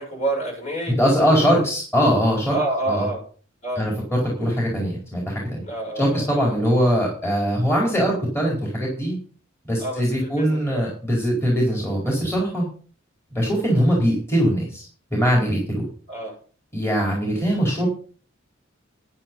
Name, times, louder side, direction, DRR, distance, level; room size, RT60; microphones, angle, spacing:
voice 1, 0.0-1.7 2.5-3.2 3.6-3.9 5.6-6.7 9.8-10.8 13.7-13.9 16.1-16.4, right 2 dB, 35° left, 0 dB, 5.9 m, -29 dB
voice 2, 1.0-2.6 2.9-3.1 3.8-5.6 6.0-9.2 9.7-12.6 13.3-15.9 16.7-17.9, equal, 15° left, -3 dB, 4.3 m, -21 dB
10.5 x 9.9 x 5.4 m, 0.41 s
head